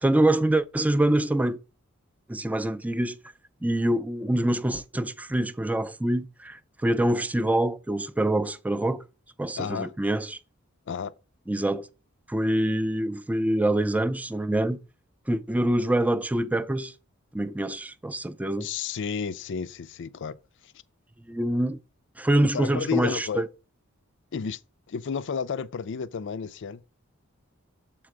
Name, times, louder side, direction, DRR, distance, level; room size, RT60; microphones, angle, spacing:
voice 1, 0.0-1.6 2.3-3.2 3.6-9.0 9.4-10.4 11.5-11.9 12.3-14.8 15.3-16.9 17.3-18.7 21.3-21.8 22.2-23.5, right 1 dB, 5° right, 0.4 m, -25 dB
voice 2, 9.6-9.9 10.9-11.1 18.6-20.4 20.6-20.7 22.5-23.5 24.3-24.6 24.9-26.8, left 6 dB, 60° left, 0.4 m, -31 dB
7.6 x 4.4 x 4.7 m
head